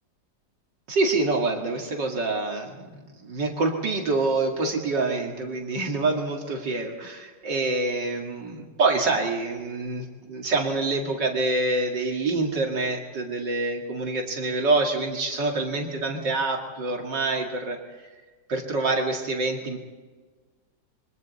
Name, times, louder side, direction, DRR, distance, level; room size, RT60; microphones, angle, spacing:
voice 1, 0.9-18.1 18.5-19.8, right 3 dB, 70° right, 1 dB, 2.8 m, -26 dB
27.0 x 23.5 x 4.2 m, 1.4 s
omnidirectional pair, 2.0 m